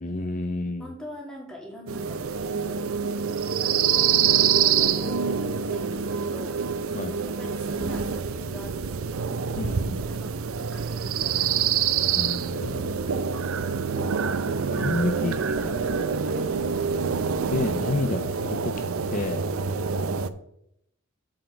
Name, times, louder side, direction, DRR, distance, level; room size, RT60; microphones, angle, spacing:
voice 1, 0.0-0.9 6.9-7.2 9.6-10.0 12.2-13.0 14.0-14.2 14.7-15.4 15.6-15.7 17.5-18.8 19.1-19.5, left 2 dB, 40° left, 6 dB, 0.5 m, -30 dB
voice 2, 0.8-2.8 3.6-6.6 7.4-9.1 9.9-10.3 10.7-11.9 13.4-13.8 15.2-15.9 16.3-16.7 19.9-20.3, left 1 dB, 5° left, -2 dB, 2.4 m, -43 dB
sound 1, 1.9-20.3, right 7 dB, 80° right, 0.6 m, -26 dB
7.8 x 6.3 x 4.5 m, 0.75 s
head